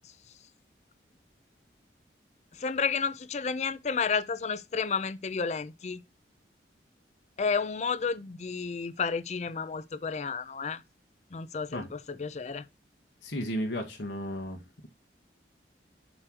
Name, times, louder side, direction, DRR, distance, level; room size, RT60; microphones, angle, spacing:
voice 1, 2.5-6.0 7.4-10.8 11.3-12.7, left 5 dB, 40° left, 0.4 m, -31 dB
voice 2, 13.2-14.6, equal, 85° left, 1.4 m, -33 dB
7.6 x 3.2 x 6.2 m
head